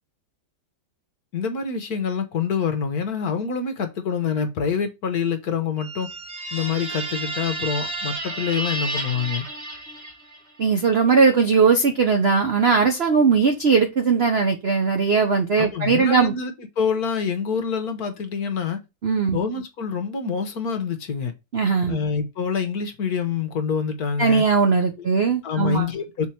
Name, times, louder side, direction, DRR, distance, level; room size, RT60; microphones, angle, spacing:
voice 1, 1.3-6.1 6.5-9.5 15.6-18.8 19.3-21.3 21.9-24.4 25.0-25.1 25.4-26.3, left 6 dB, 55° left, 1.4 m, -26 dB
sound 1, 5.8-10.5, right 2 dB, 35° right, 1.6 m, -31 dB
voice 2, 10.6-16.3 19.0-19.4 21.5-22.0 24.2-25.9, right 5 dB, 60° right, 0.6 m, -19 dB
6.1 x 4.2 x 4.4 m
omnidirectional pair, 2.1 m